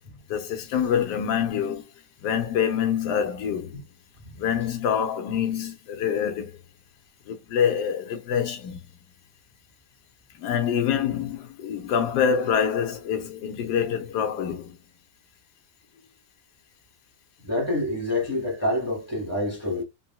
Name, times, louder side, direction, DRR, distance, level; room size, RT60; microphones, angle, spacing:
voice 1, 0.3-1.8 2.2-3.8 4.4-6.5 7.3-8.8 10.4-14.8, left 8 dB, 70° left, 1.2 m, -26 dB
voice 2, 17.4-19.8, left 1 dB, 15° right, 0.6 m, -27 dB
4.0 x 2.1 x 2.2 m
omnidirectional pair, 2.0 m